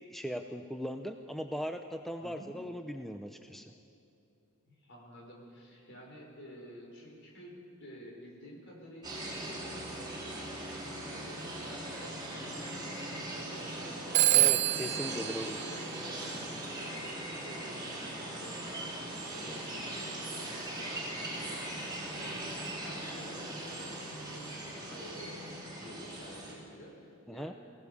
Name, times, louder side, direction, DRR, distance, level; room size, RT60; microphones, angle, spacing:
voice 1, 0.0-3.7 14.3-15.6 27.3-27.5, equal, ahead, 6 dB, 0.6 m, -39 dB
voice 2, 4.7-25.4 25.8-27.5, equal, 55° left, -1 dB, 5.5 m, -51 dB
sound 1, 9.0-26.5, right 1 dB, 20° right, 4.4 m, -40 dB
Telephone, 14.1-16.6, right 16 dB, 55° right, 0.4 m, -28 dB
23.0 x 17.0 x 7.1 m, 2.7 s
head